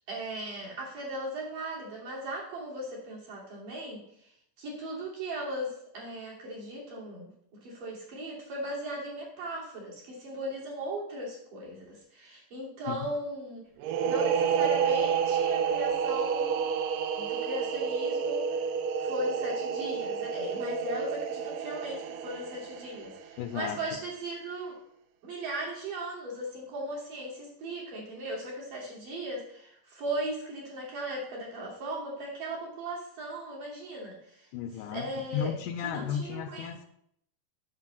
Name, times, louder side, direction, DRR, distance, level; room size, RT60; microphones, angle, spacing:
voice 1, 0.1-7.3 7.6-13.6 14.0-16.6 17.2-18.6 19.0-24.8 25.2-34.5 34.9-35.5 35.8-36.9, right 1 dB, 70° right, -5 dB, 4.7 m, -37 dB
sound 1, 13.8-23.3, right 7 dB, 90° right, 2.4 m, -29 dB
voice 2, 23.4-23.8 34.5-36.8, left 8 dB, 80° left, 7 dB, 2.0 m, -34 dB
8.2 x 5.1 x 7.3 m, 0.72 s
omnidirectional pair, 3.8 m